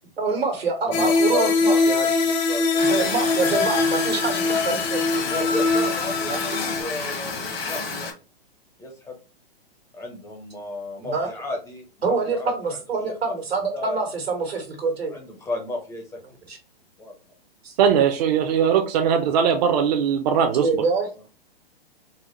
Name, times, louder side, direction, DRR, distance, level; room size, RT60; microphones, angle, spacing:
voice 1, 0.2-2.1 2.8-5.1 6.2-6.4 11.0-11.3 12.0-15.1 16.5-16.6 17.6-17.7 20.5-21.1, right 4 dB, 85° right, 4 dB, 1.3 m, -26 dB
voice 2, 0.8-1.8 2.2-3.1 5.1-8.1 8.8-9.1 9.9-12.8 13.3-13.4 13.7-14.0 15.1-16.0 17.0-17.1 21.0-21.1, left 2 dB, 10° left, 2 dB, 0.5 m, -33 dB
sound 1, 0.9-6.8, left 3 dB, 45° left, 0.7 m, -22 dB
sound 2, 2.8-8.1, left 4 dB, 70° left, 1.3 m, -31 dB
voice 3, 17.8-20.8, right 7 dB, 45° right, 6 dB, 0.5 m, -20 dB
4.1 x 2.0 x 2.9 m, 0.32 s
hypercardioid pair, 120°, 30 cm